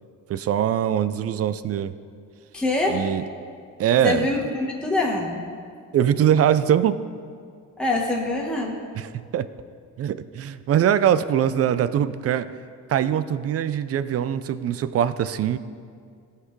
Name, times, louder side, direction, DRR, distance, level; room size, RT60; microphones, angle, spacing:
voice 1, 0.3-1.9 2.9-3.2 3.8-4.3 5.9-7.0 9.0-9.5 10.0-12.5 12.9-15.6, right 10 dB, 50° right, 14 dB, 0.5 m, -22 dB
voice 2, 2.5-3.1 4.0-5.4 7.8-8.8, left 2 dB, 5° left, -2 dB, 1.2 m, -24 dB
16.5 x 5.8 x 3.2 m, 2.2 s
cardioid pair, 90°, 30 cm